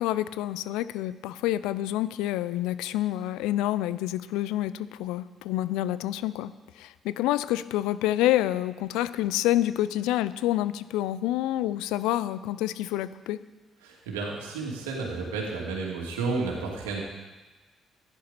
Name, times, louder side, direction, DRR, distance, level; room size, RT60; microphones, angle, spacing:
voice 1, 0.0-13.4, left 14 dB, 80° left, 16 dB, 0.5 m, -28 dB
voice 2, 13.8-17.0, right 4 dB, 85° right, -2 dB, 2.6 m, -31 dB
15.0 x 10.5 x 4.2 m, 1.2 s
hypercardioid pair, 50°, 0 cm